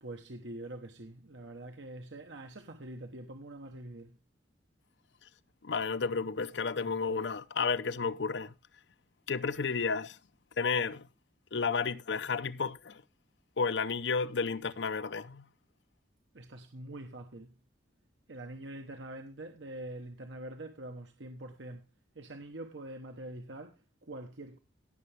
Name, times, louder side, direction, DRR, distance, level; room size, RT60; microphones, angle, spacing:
voice 1, 0.0-4.2 16.3-17.6 18.3-21.9 22.1-24.6, right 1 dB, 75° right, 1.2 m, -45 dB
voice 2, 5.6-8.5 9.3-10.2 10.6-11.1 11.5-13.0 13.6-15.4, left 5 dB, 70° left, 0.7 m, -32 dB
17.0 x 7.0 x 3.4 m
head